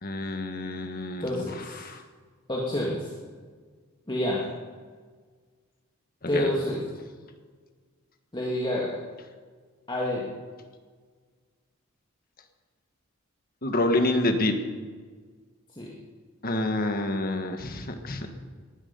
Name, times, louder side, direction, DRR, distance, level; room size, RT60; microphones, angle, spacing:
voice 1, 0.0-1.3 1.7-2.0 6.3-6.5 13.6-14.5 16.4-18.3, left 1 dB, 45° left, 6 dB, 1.6 m, -27 dB
voice 2, 1.2-1.9 2.5-3.1 4.1-4.5 6.3-6.8 8.3-9.0 9.9-10.3 15.8-15.9, left 1 dB, 20° left, -4 dB, 2.3 m, -28 dB
19.5 x 12.0 x 5.4 m, 1.6 s
head